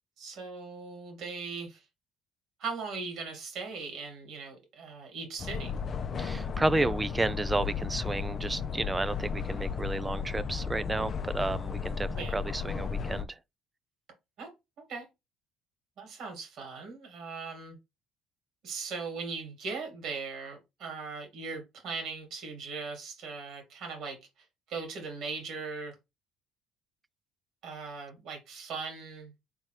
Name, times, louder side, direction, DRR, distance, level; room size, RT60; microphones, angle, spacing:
voice 1, 0.2-1.8 2.6-5.7 12.1-12.4 14.4-14.5 14.8-15.1 16.0-17.8 18.6-24.2 24.7-25.9 27.6-29.3, right 4 dB, 65° right, 2.2 m, -39 dB
sound 1, 5.4-13.2, left 6 dB, 40° left, 0.6 m, -34 dB
voice 2, 6.2-13.4, right 2 dB, 15° right, 0.4 m, -31 dB
4.1 x 3.5 x 3.3 m
supercardioid pair, 90°, 0 cm